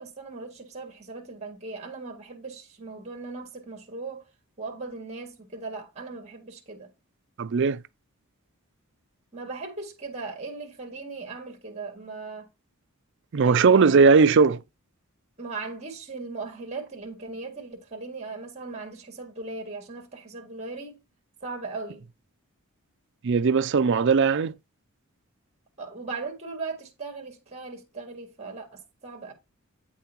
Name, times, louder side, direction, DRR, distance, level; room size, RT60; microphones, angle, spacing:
voice 1, 0.0-4.3 4.6-6.9 9.3-12.5 13.4-14.1 15.4-21.0 21.4-22.0 25.8-29.3, right 3 dB, 30° right, 2.3 m, -38 dB
voice 2, 7.4-7.8 13.3-14.6 23.2-24.5, right 5 dB, 55° right, 0.4 m, -19 dB
9.2 x 6.9 x 3.0 m
head